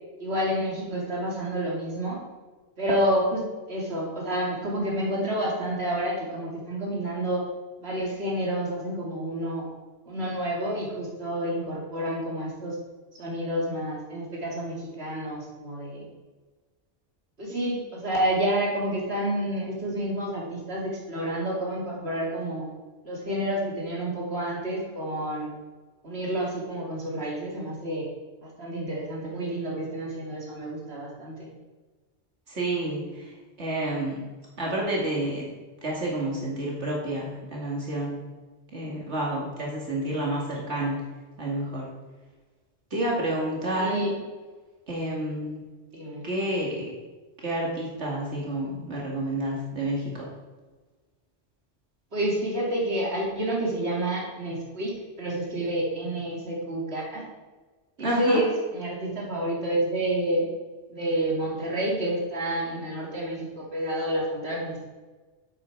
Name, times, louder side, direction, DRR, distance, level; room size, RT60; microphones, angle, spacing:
voice 1, 0.2-2.2 2.8-3.4 3.7-7.4 7.8-9.7 10.1-12.8 13.2-16.1 17.4-22.7 23.0-25.5 26.0-28.1 28.4-31.5 43.8-44.1 45.9-46.2 52.1-54.9 55.2-57.2 58.0-60.4 60.9-64.9, right 1 dB, 65° right, -4 dB, 2.7 m, -29 dB
voice 2, 32.5-33.3 33.6-34.2 34.6-35.5 35.8-38.2 38.7-40.9 41.4-41.9 42.9-44.1 44.9-45.6 46.2-46.9 47.4-50.0 58.0-58.4, right 1 dB, 90° right, -3 dB, 2.6 m, -29 dB
10.0 x 8.7 x 4.6 m, 1.3 s
omnidirectional pair, 1.1 m